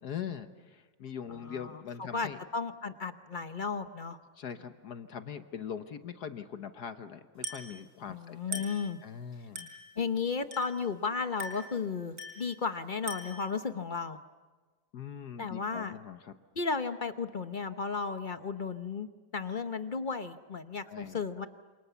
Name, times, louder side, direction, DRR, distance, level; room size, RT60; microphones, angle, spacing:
voice 1, 0.0-2.4 4.4-8.7 9.0-9.7 14.9-16.3 20.9-21.2, left 8 dB, 65° left, 9 dB, 1.6 m, -42 dB
voice 2, 1.4-4.2 8.1-9.0 10.0-14.2 15.4-16.0 16.6-19.1 19.3-21.5, left 5 dB, 40° left, 9 dB, 0.7 m, -34 dB
Glass, 7.4-7.8 8.5-8.9 9.6-9.9 10.5-10.9 11.4-11.8 12.2-12.5 13.1-13.5, right 1 dB, 50° right, 5.4 m, -40 dB
28.5 x 27.5 x 7.1 m, 1.3 s
omnidirectional pair, 2.0 m